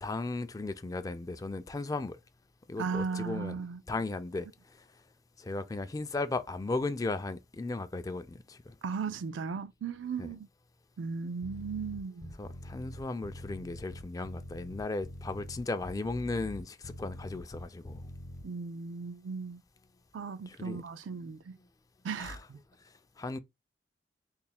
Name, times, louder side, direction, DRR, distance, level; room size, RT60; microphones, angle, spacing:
voice 1, 0.0-2.2 2.7-3.5 3.9-4.5 5.4-8.7 10.2-10.3 12.4-18.0 20.5-20.8 22.2-22.4 23.2-23.4, left 3 dB, 20° left, 0.3 m, -36 dB
voice 2, 2.8-3.8 8.8-10.5 11.0-12.4 18.4-19.6 20.1-21.6 22.0-22.6, right 5 dB, 85° right, 0.4 m, -36 dB
sound 1, 11.4-18.4, left 1 dB, 55° left, 0.8 m, -44 dB
3.4 x 2.1 x 4.1 m
head